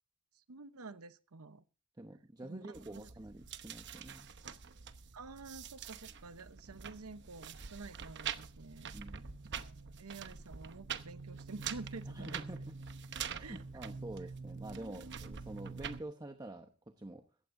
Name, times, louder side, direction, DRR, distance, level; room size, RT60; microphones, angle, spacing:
voice 1, 0.5-1.6 2.4-2.7 2.9-3.1 5.1-8.9 9.5-12.5 13.4-13.6, right 3 dB, 85° right, 13 dB, 0.9 m, -49 dB
voice 2, 2.0-4.3 6.7-6.8 8.9-9.3 12.1-12.8 13.3-17.2, right 1 dB, 20° right, 5 dB, 0.9 m, -47 dB
sound 1, 2.7-16.0, right 6 dB, 55° right, 0.9 m, -45 dB
17.5 x 15.0 x 2.7 m, 0.33 s
head